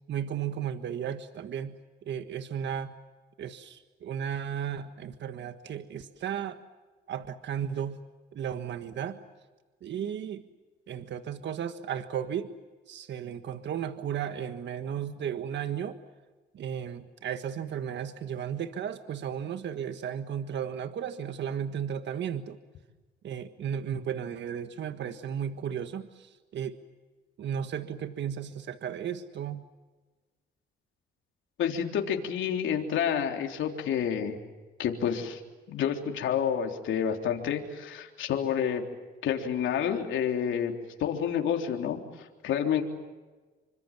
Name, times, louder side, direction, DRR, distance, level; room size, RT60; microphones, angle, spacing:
voice 1, 0.1-2.9 3.4-6.6 7.1-8.0 8.3-9.2 9.8-10.4 10.9-12.5 12.9-16.0 16.5-22.6 23.2-26.8 27.4-29.6, right 8 dB, 65° right, 9 dB, 1.6 m, -34 dB
voice 2, 31.6-34.4 34.8-35.4 35.7-38.8 39.2-40.7 41.0-42.8, left 8 dB, 75° left, 2 dB, 3.6 m, -29 dB
27.5 x 25.5 x 7.4 m, 1.3 s
cardioid pair, 90°, 20 cm